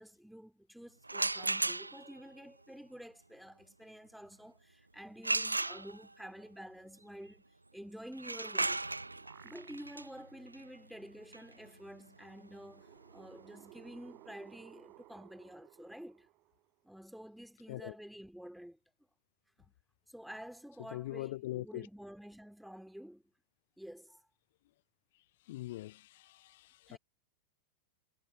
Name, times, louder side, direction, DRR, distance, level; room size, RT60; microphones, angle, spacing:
voice 1, 0.0-7.4 7.7-8.9 9.4-16.3 16.8-18.8 19.6-19.7 20.1-23.2 23.8-24.2 26.9-27.0, equal, ahead, 2.9 m, -50 dB
sound 1, 1.0-2.2 5.2-6.3 8.1-13.8, right 2 dB, 80° right, 0.7 m, -36 dB
sound 2, 9.0-10.2 10.7-10.8 12.0-16.8, right 20 dB, 40° right, 4.4 m, -59 dB
voice 2, 20.9-21.9 25.5-27.0, left 17 dB, 55° left, 0.7 m, -42 dB
figure-of-eight pair, 90°, 0 cm